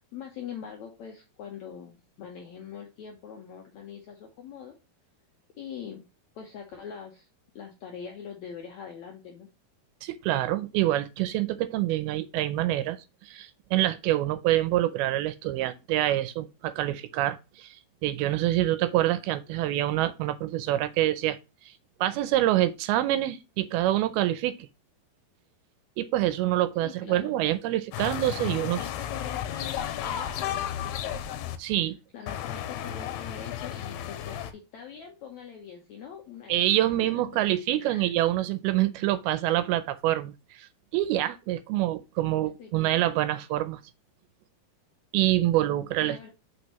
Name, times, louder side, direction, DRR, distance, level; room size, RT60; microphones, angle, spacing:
voice 1, 0.0-4.7 5.6-6.1 6.3-7.3 7.5-9.5 26.7-27.3 28.4-31.3 31.6-31.7 32.1-36.6 37.0-37.2 37.8-38.1 42.6-43.0 46.0-46.3, left 7 dB, 75° left, 1.7 m, -43 dB
voice 2, 10.0-13.0 13.2-21.4 21.7-21.8 22.0-24.7 26.0-28.8 31.6-32.0 36.5-40.7 40.9-43.8 45.1-46.3, right 14 dB, 80° right, 2.4 m, -26 dB
sound 1, 27.9-31.6 32.3-34.5, left 10 dB, 90° left, 2.7 m, -33 dB
6.4 x 5.5 x 2.9 m
omnidirectional pair, 4.6 m